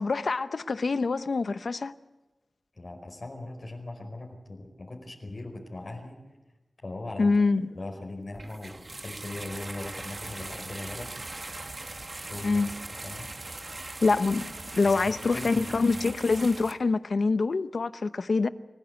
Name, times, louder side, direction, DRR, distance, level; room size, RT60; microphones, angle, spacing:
voice 1, 0.0-1.9 7.2-7.7 12.4-12.7 13.6-13.7 14.0-18.5, left 3 dB, 80° left, 0.8 m, -25 dB
voice 2, 2.7-6.2 6.8-7.4 7.7-11.1 12.3-12.8 13.0-13.3 14.8-15.6 15.9-16.1, left 2 dB, 55° left, 5.0 m, -39 dB
sound 1, 8.3-16.7, right 2 dB, 45° right, 1.8 m, -40 dB
28.5 x 15.0 x 8.2 m
wide cardioid pair, 70°, 0 cm